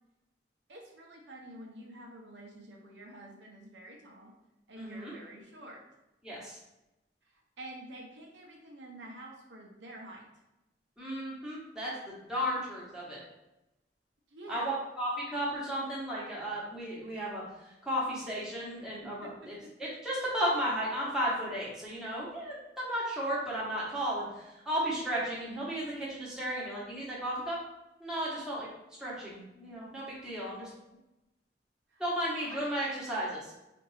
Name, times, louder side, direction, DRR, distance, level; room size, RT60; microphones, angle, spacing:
voice 1, 0.7-4.3 4.7-5.8 7.6-10.2 14.3-14.7 18.8-19.7 31.9-32.0 32.3-32.7, right 1 dB, 80° right, -1 dB, 0.8 m, -48 dB
voice 2, 4.8-5.1 6.2-6.6 11.0-13.2 14.5-19.5 19.8-27.6 28.0-28.7 29.0-30.7 32.0-33.4, equal, 5° right, -7 dB, 1.0 m, -34 dB
4.3 x 2.5 x 3.1 m, 0.94 s
head